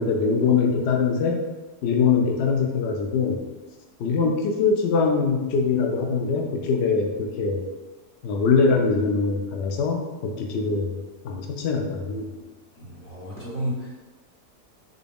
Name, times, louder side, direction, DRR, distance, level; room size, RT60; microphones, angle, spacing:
voice 1, 0.0-1.4 1.8-3.4 4.0-7.6 8.2-10.9 11.2-12.2, left 5 dB, 85° left, 2 dB, 0.6 m, -23 dB
voice 2, 12.8-14.0, equal, 30° left, -7 dB, 0.8 m, -32 dB
3.9 x 2.3 x 3.4 m, 1.2 s
omnidirectional pair, 1.7 m